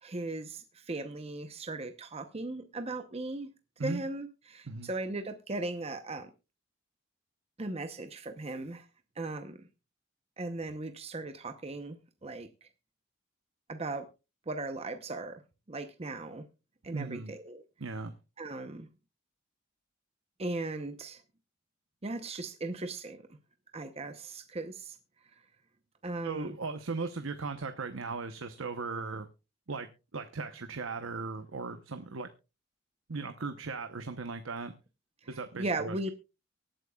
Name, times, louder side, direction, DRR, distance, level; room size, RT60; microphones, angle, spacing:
voice 1, 0.0-3.5 3.8-6.3 7.6-8.9 9.2-9.6 10.4-12.7 13.7-14.1 14.5-15.4 15.7-16.5 16.8-17.6 18.4-18.9 20.4-21.2 22.0-23.2 23.7-25.0 26.0-26.5 35.6-36.1, right 2 dB, 30° right, 0.8 m, -37 dB
voice 2, 16.9-17.3 17.8-18.1 26.2-29.3 29.7-29.9 30.1-32.3 33.1-34.7 35.3-36.1, right 4 dB, 75° right, 0.9 m, -37 dB
24.0 x 9.0 x 2.3 m
head